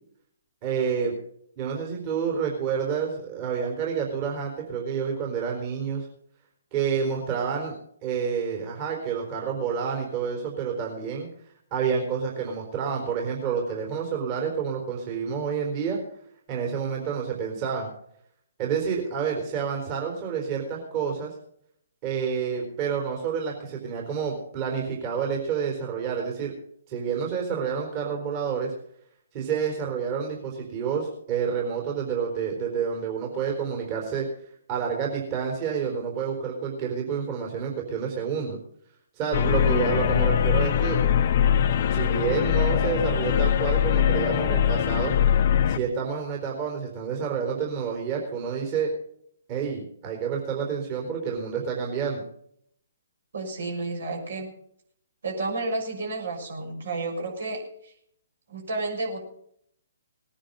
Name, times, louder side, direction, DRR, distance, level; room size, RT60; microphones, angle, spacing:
voice 1, 0.6-1.1 1.6-6.1 6.7-7.7 8.0-11.3 11.7-16.0 16.5-17.9 18.6-21.3 22.0-26.5 26.9-28.7 29.3-34.3 34.7-38.6 39.2-41.0 41.9-45.1 45.7-48.9 49.5-52.2, right 6 dB, 35° right, 0 dB, 4.1 m, -29 dB
sound 1, 39.3-45.8, left 9 dB, 45° left, 0.8 m, -22 dB
voice 2, 53.3-54.5 55.2-57.9 58.5-59.2, right 2 dB, 65° right, 1 dB, 6.3 m, -31 dB
19.5 x 10.0 x 5.3 m, 0.67 s
figure-of-eight pair, 135°, 0 cm